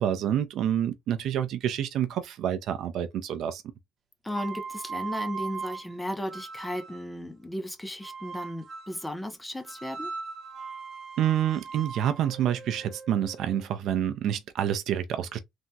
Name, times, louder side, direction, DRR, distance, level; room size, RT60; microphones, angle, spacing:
voice 1, 0.0-3.6 11.2-15.4, right 10 dB, 60° right, 0.4 m, -28 dB
voice 2, 4.2-10.1, left 1 dB, 5° left, 0.5 m, -35 dB
sound 1, 4.3-7.1 8.0-9.0 9.6-13.6, right 5 dB, 35° right, 0.7 m, -39 dB
3.4 x 2.0 x 2.6 m
cardioid pair, 170°, 0 cm